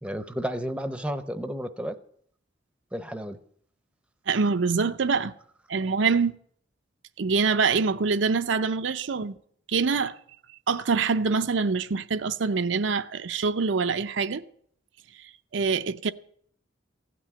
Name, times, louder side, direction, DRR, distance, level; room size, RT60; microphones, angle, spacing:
voice 1, 0.0-1.9 2.9-3.4, equal, 5° right, 0.7 m, -32 dB
voice 2, 4.3-5.3 5.7-6.4 7.2-9.4 9.7-10.1 10.7-14.4 15.5-16.1, right 5 dB, 75° right, 0.6 m, -25 dB
15.5 x 6.1 x 9.4 m
head